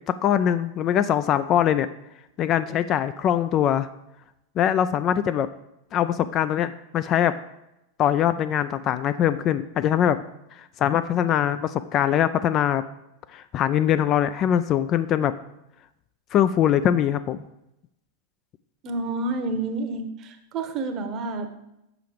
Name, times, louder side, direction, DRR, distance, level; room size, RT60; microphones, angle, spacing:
voice 1, 0.1-1.9 2.4-3.9 4.6-5.5 5.9-7.4 8.0-10.2 10.8-12.8 13.3-15.3 16.3-17.4, left 10 dB, 30° left, 11 dB, 0.3 m, -22 dB
voice 2, 18.8-21.5, right 2 dB, 35° right, 7 dB, 1.0 m, -29 dB
6.9 x 5.5 x 5.0 m, 0.86 s
figure-of-eight pair, 90°, 0 cm